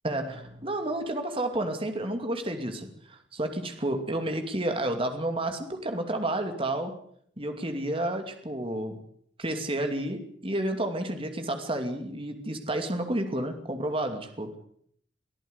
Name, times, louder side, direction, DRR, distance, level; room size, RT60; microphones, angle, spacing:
voice 1, 0.0-7.0 7.4-9.0 9.4-14.5, right 1 dB, 30° right, 6 dB, 2.6 m, -31 dB
23.5 x 14.5 x 8.2 m, 0.64 s
head